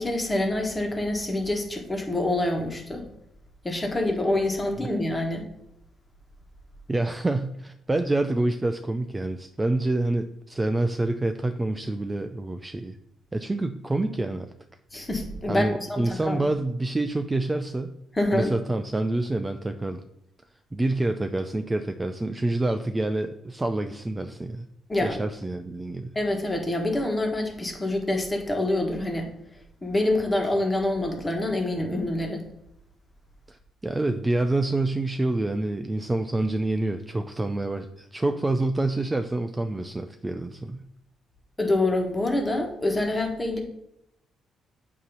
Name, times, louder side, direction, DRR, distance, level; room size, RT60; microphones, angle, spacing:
voice 1, 0.0-3.1 3.6-5.5 14.9-16.4 18.1-18.5 24.9-25.2 26.1-29.3 29.8-32.5 41.6-43.6, left 1 dB, 15° left, 3 dB, 1.5 m, -26 dB
voice 2, 6.9-13.0 13.3-14.5 15.5-17.9 18.3-20.0 20.7-24.6 25.0-26.1 33.5-40.8, right 2 dB, 15° right, 7 dB, 0.4 m, -27 dB
8.4 x 3.0 x 5.5 m, 0.80 s
cardioid pair, 90°, 0 cm